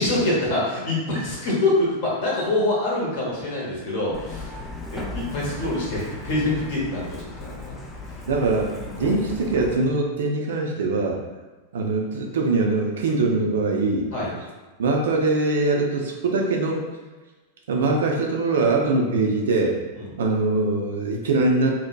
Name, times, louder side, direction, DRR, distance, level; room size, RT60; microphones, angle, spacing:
voice 1, 0.0-4.5 4.9-7.8 14.1-14.3 19.9-20.1, left 2 dB, 50° left, -5 dB, 0.8 m, -25 dB
Truck, 4.1-9.8, left 2 dB, 15° left, 0.3 m, -36 dB
voice 2, 8.3-11.2 11.7-14.1 14.8-16.8 17.7-19.8 20.2-21.7, right 3 dB, 60° right, 1 dB, 0.3 m, -22 dB
2.7 x 2.1 x 2.2 m, 1.2 s
figure-of-eight pair, 90°, 0 cm